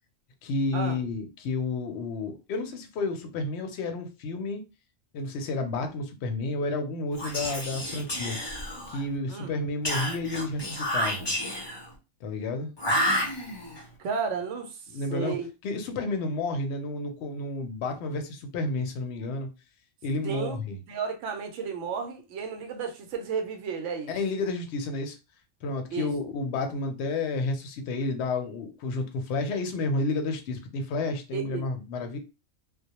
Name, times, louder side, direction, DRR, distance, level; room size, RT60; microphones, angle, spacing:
voice 1, 0.4-4.6 5.1-8.4 8.9-11.3 12.2-12.7 14.9-15.4 15.6-19.5 20.0-20.8 24.1-25.2 25.6-32.2, left 3 dB, 65° left, 0.8 m, -31 dB
Whispering, 7.1-9.1 9.8-11.9 12.8-13.8, equal, 35° left, 0.4 m, -30 dB
voice 2, 14.0-14.8 15.1-15.5 20.2-20.6 20.9-24.1 25.9-26.1 31.3-31.7, right 6 dB, 75° right, 0.9 m, -33 dB
2.2 x 2.0 x 2.8 m
omnidirectional pair, 1.3 m